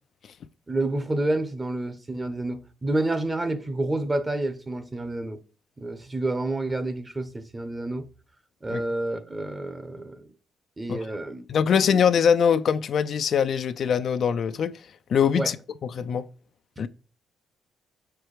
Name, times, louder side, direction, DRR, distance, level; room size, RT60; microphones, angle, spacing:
voice 1, 0.7-5.4 5.8-8.1 8.6-10.3 10.8-11.4 15.4-15.5 16.8-16.9, right 2 dB, 20° right, 1.1 m, -29 dB
voice 2, 11.5-14.7 15.1-15.6 15.8-16.3 16.8-16.9, left 7 dB, 60° left, 0.5 m, -22 dB
6.6 x 4.6 x 5.0 m
cardioid pair, 90°, 0 cm